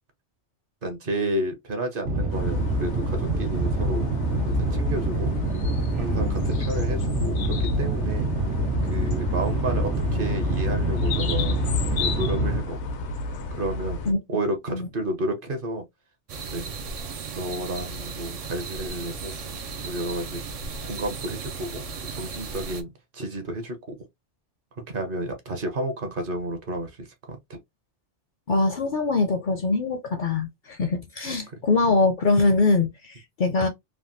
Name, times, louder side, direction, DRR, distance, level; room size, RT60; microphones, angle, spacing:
voice 1, 0.8-4.1 4.5-5.3 6.0-8.3 8.9-11.6 11.9-12.9 13.6-14.0 14.3-15.8 16.5-16.7 17.3-19.3 19.8-20.4 20.8-21.8 22.1-24.0 24.9-27.6 31.3-31.6, right 1 dB, 55° right, 0.9 m, -31 dB
sound 1, 2.0-12.6, right 1 dB, 85° right, 1.3 m, -26 dB
sound 2, 2.3-14.1, left 3 dB, 85° left, 0.9 m, -33 dB
sound 3, 16.3-22.8, right 4 dB, 70° right, 0.3 m, -36 dB
voice 2, 28.5-33.7, left 3 dB, 60° left, 0.6 m, -23 dB
3.4 x 2.2 x 2.5 m
omnidirectional pair, 1.2 m